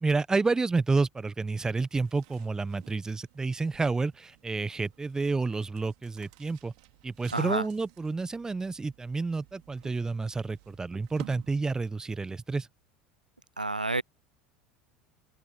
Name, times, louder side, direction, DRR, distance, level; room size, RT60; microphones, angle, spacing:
voice 1, 0.0-6.7 7.0-12.7, right 3 dB, 15° right, 1.3 m, -30 dB
sound 1, 1.8-12.1, right 26 dB, 60° right, 3.7 m, -54 dB
voice 2, 7.3-7.6 13.6-14.0, right 2 dB, 90° right, 0.5 m, -29 dB
figure-of-eight pair, 75°, 4 cm